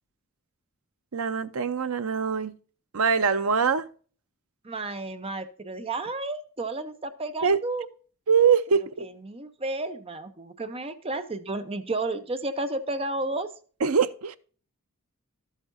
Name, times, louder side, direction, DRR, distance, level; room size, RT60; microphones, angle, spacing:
voice 1, 1.1-2.5 2.9-3.9 7.4-7.6 8.3-9.1 13.8-14.4, right 6 dB, 70° right, 0.6 m, -23 dB
voice 2, 4.6-7.9 8.7-13.5, right 2 dB, 25° right, 0.7 m, -32 dB
12.5 x 8.2 x 2.6 m
head